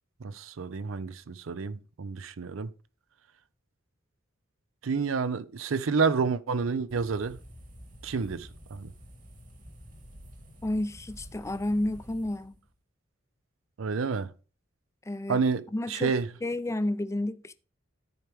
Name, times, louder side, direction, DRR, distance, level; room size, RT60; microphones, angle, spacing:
voice 1, 0.2-2.7 4.8-7.4 8.0-8.9 13.8-14.3 15.3-16.3, right 5 dB, 75° right, 0.5 m, -29 dB
sound 1, 6.9-12.7, equal, 40° right, 1.7 m, -49 dB
voice 2, 10.6-12.5 15.1-15.4 15.7-16.1 16.4-17.5, left 1 dB, 15° left, 0.5 m, -31 dB
13.5 x 4.5 x 3.5 m
head